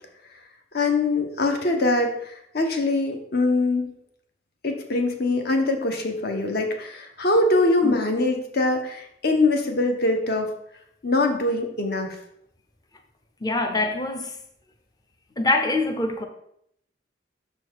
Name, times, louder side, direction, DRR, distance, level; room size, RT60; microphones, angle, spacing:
voice 1, 0.7-3.9 4.6-10.5 11.0-12.2, left 2 dB, 60° left, 1.0 m, -23 dB
voice 2, 13.4-14.4 15.4-16.2, left 2 dB, 20° left, 0.6 m, -24 dB
6.5 x 4.4 x 4.6 m
head